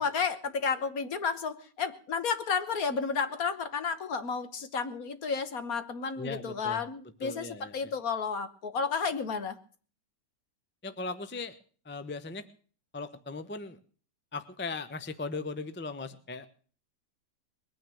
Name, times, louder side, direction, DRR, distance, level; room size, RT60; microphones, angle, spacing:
voice 1, 0.0-7.5 7.7-9.6, left 5 dB, 55° left, 11 dB, 1.6 m, -32 dB
voice 2, 6.2-6.8 7.2-7.9 10.8-11.6 11.8-12.4 12.9-13.8 14.3-16.5, left 3 dB, 10° left, 11 dB, 0.7 m, -38 dB
21.0 x 9.4 x 7.0 m, 0.43 s
omnidirectional pair, 1.9 m